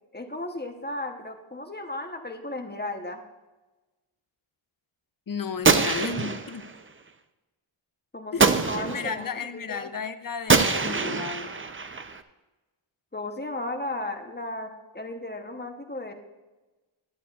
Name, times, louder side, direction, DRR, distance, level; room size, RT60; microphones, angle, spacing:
voice 1, 0.1-3.2 8.1-9.9 13.1-16.1, left 2 dB, 20° left, 5 dB, 0.9 m, -35 dB
voice 2, 5.3-6.6 8.3-11.6, left 6 dB, 45° left, 11 dB, 0.6 m, -33 dB
Gunshot gunfire, 5.6-6.8 8.4-9.2 10.5-12.2, right 4 dB, 25° right, 0.5 m, -24 dB
11.5 x 8.2 x 2.4 m, 1.1 s
wide cardioid pair, 45°, 50 cm